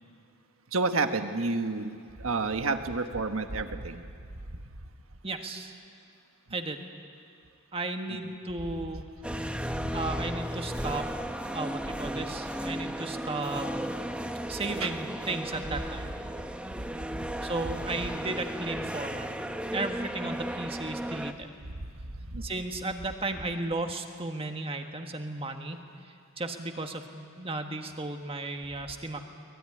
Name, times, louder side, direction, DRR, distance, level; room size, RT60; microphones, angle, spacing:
voice 1, 0.7-4.0 14.8-14.9 22.3-22.4, right 3 dB, 85° right, 7 dB, 1.4 m, -29 dB
voice 2, 5.2-5.7 6.5-6.8 7.7-9.0 9.9-11.1 11.5-13.7 14.5-16.1 17.4-19.3 19.7-21.5 22.4-25.8 26.4-29.2, right 2 dB, 25° right, 5 dB, 1.5 m, -34 dB
sound 1, 9.2-21.3, equal, 5° right, 0.8 m, -35 dB
23.5 x 20.0 x 9.9 m, 2.3 s
head